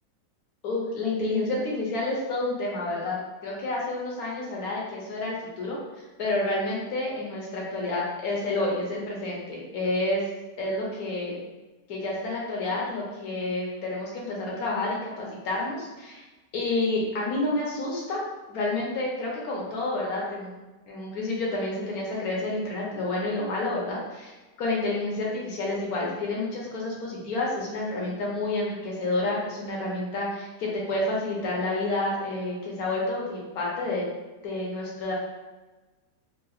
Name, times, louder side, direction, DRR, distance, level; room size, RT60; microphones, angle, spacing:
voice 1, 0.6-5.8 6.2-10.2 10.6-11.4 11.9-16.2 16.5-18.2 18.5-24.3 24.6-34.0 34.4-35.1, left 2 dB, 65° left, -4 dB, 1.2 m, -29 dB
3.8 x 2.4 x 2.4 m, 1.2 s
omnidirectional pair, 1.8 m